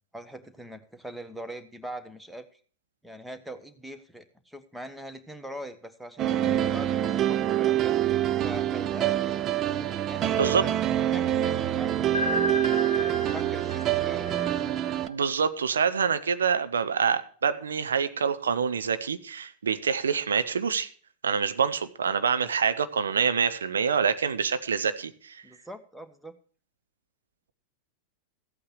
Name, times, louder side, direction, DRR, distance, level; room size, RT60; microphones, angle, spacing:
voice 1, 0.1-2.6 3.0-8.0 8.4-9.2 10.1-10.7 11.1-12.6 12.9-14.5 25.4-26.4, right 1 dB, 5° right, 1.2 m, -42 dB
sound 1, 6.2-15.1, right 11 dB, 30° right, 0.6 m, -26 dB
sound 2, 12.1-15.1, left 3 dB, 75° left, 0.8 m, -33 dB
voice 2, 15.1-20.9 21.2-25.4, right 6 dB, 70° right, 0.8 m, -26 dB
14.5 x 8.6 x 4.7 m
figure-of-eight pair, 90°, 0 cm